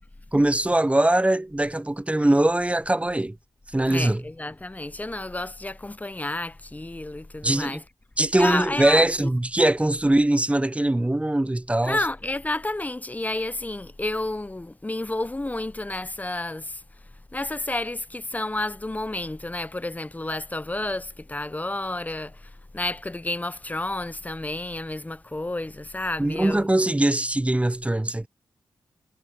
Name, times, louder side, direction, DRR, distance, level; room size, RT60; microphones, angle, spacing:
voice 1, 0.3-3.4 3.7-4.2 7.4-7.8 8.2-12.0 26.2-28.3, right 1 dB, 15° right, 0.9 m, -22 dB
voice 2, 3.9-7.8 8.4-9.1 11.8-16.8 17.3-26.7, left 2 dB, 20° left, 0.8 m, -30 dB
supercardioid pair, 40°, 9 cm